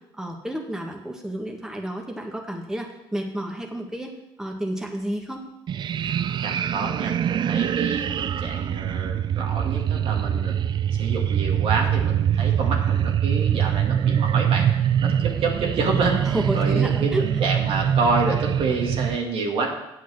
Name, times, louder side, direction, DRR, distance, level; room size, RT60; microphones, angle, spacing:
voice 1, 0.2-4.1 4.4-5.4 16.2-17.2, right 1 dB, 5° right, 1 dB, 1.7 m, -30 dB
sound 1, 5.7-19.2, right 9 dB, 50° right, 0.4 m, -23 dB
voice 2, 6.4-10.5 11.0-14.7 15.0-16.2 16.5-19.7, right 3 dB, 65° right, 1 dB, 2.1 m, -28 dB
8.3 x 7.4 x 6.4 m, 0.88 s
supercardioid pair, 75°, 10 cm